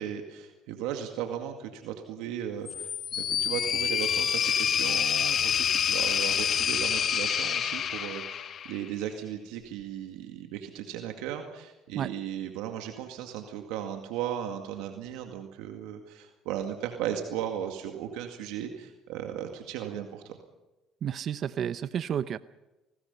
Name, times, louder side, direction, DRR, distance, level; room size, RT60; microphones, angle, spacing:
voice 1, 0.0-20.4, right 10 dB, 85° right, 4 dB, 2.1 m, -36 dB
sound 1, 2.7-8.9, left 8 dB, 55° left, 1.3 m, -27 dB
voice 2, 21.0-22.4, right 9 dB, 55° right, 14 dB, 0.7 m, -31 dB
28.5 x 20.0 x 5.6 m, 1.0 s
supercardioid pair, 80°, 0 cm